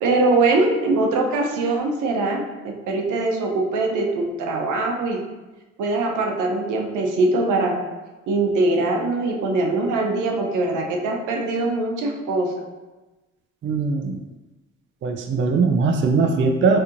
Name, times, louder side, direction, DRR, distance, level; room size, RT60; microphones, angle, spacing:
voice 1, 0.0-5.2 5.8-7.8 8.3-12.6, right 2 dB, 80° right, 1 dB, 0.7 m, -22 dB
voice 2, 13.6-14.2 15.0-16.8, right 4 dB, 40° right, 4 dB, 0.4 m, -20 dB
4.2 x 2.7 x 2.5 m, 1.1 s
cardioid pair, 90°, 30 cm